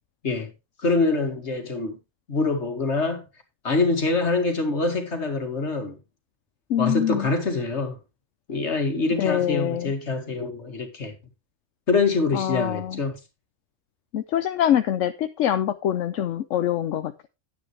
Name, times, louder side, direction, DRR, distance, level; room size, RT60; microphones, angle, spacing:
voice 1, 0.8-2.0 2.3-3.3 3.6-6.0 6.8-8.0 8.5-11.2 11.9-13.2, left 3 dB, 70° left, 2.3 m, -25 dB
voice 2, 6.7-7.3 9.2-9.9 12.3-13.0 14.1-17.3, left 10 dB, 85° left, 1.0 m, -24 dB
9.9 x 9.7 x 3.3 m
omnidirectional pair, 1.2 m